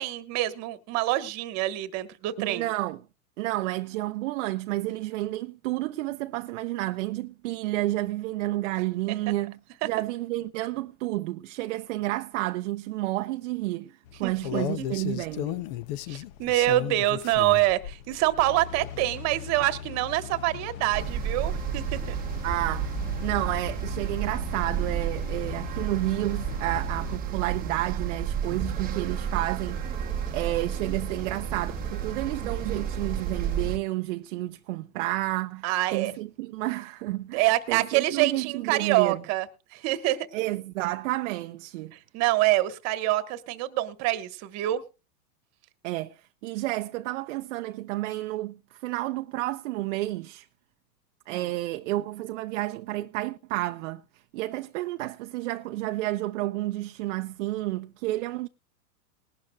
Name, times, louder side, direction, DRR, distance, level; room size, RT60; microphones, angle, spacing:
voice 1, 0.0-2.7 9.1-9.3 9.8-9.9 14.2-14.9 16.1-22.2 35.6-36.1 37.3-39.5 39.7-40.3 41.9-44.8 51.3-51.4, right 16 dB, 35° right, 1.3 m, -26 dB
voice 2, 2.4-3.0 3.4-15.7 22.4-39.2 40.3-41.9 45.8-50.5 51.3-54.0 54.3-58.5, right 17 dB, 55° right, 0.6 m, -31 dB
sound 1, 14.1-27.2, left 11 dB, 40° left, 0.6 m, -37 dB
sound 2, 20.9-33.8, right 8 dB, 20° right, 0.9 m, -31 dB
sound 3, 28.4-33.7, right 1 dB, 10° left, 2.3 m, -48 dB
20.5 x 11.5 x 2.3 m
hypercardioid pair, 135°, 45 cm